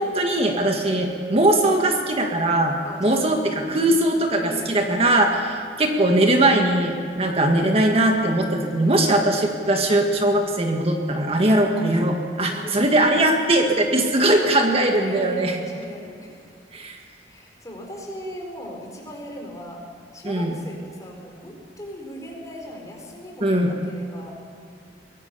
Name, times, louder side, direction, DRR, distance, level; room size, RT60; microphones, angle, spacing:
voice 1, 0.0-15.6 16.7-17.0 20.3-20.5 23.4-23.7, right 1 dB, 35° right, 2 dB, 1.9 m, -20 dB
voice 2, 2.8-3.3 3.6-4.0 4.4-5.2 8.8-9.1 12.4-13.0 14.9-16.5 17.2-19.8 20.1-24.3, equal, 20° left, 0 dB, 4.7 m, -38 dB
23.5 x 17.5 x 6.9 m, 2.3 s
head